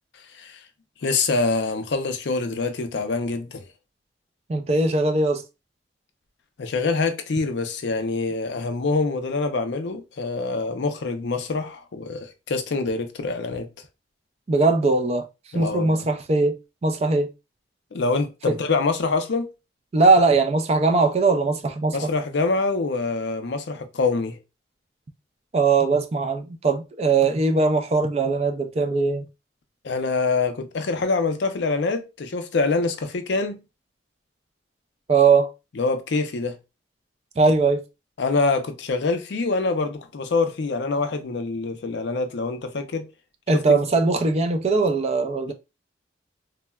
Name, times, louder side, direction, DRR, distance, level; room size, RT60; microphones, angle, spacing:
voice 1, 1.0-3.6 6.6-13.7 15.5-16.1 17.9-19.5 21.9-24.4 29.8-33.6 35.8-36.6 38.2-43.1 43.5-43.8, left 3 dB, 70° left, 0.5 m, -25 dB
voice 2, 4.5-5.4 14.5-15.3 15.5-17.3 18.5-18.6 19.9-22.1 25.5-29.2 35.1-35.5 37.4-37.8 43.5-45.5, right 3 dB, 35° right, 0.3 m, -20 dB
3.6 x 2.1 x 2.2 m
head